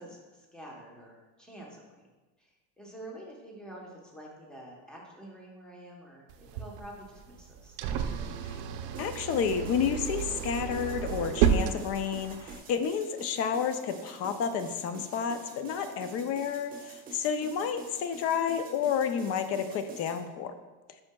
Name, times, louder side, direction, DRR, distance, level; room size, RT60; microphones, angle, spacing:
voice 1, 0.0-2.1 2.4-7.8, right 1 dB, ahead, -2 dB, 0.9 m, -48 dB
sound 1, 6.3-12.6, right 8 dB, 60° right, 0.6 m, -31 dB
sound 2, 8.9-20.2, right 3 dB, 25° right, 1.0 m, -48 dB
voice 2, 9.0-20.5, left 7 dB, 40° left, 9 dB, 0.4 m, -30 dB
7.8 x 5.7 x 2.2 m, 1.2 s
cardioid pair, 145°, 37 cm